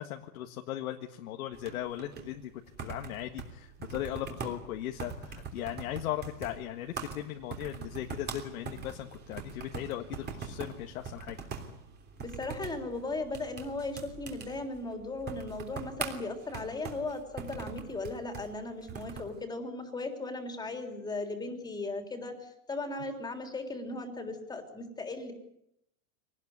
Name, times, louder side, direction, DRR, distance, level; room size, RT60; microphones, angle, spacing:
voice 1, 0.0-2.5 2.8-11.4, left 12 dB, 65° left, 4 dB, 1.8 m, -38 dB
sound 1, 1.5-19.4, right 5 dB, 20° right, 3.2 m, -43 dB
voice 2, 12.2-25.3, left 2 dB, 10° left, 5 dB, 3.4 m, -37 dB
24.0 x 19.0 x 9.6 m, 0.78 s
supercardioid pair, 150°, 45 cm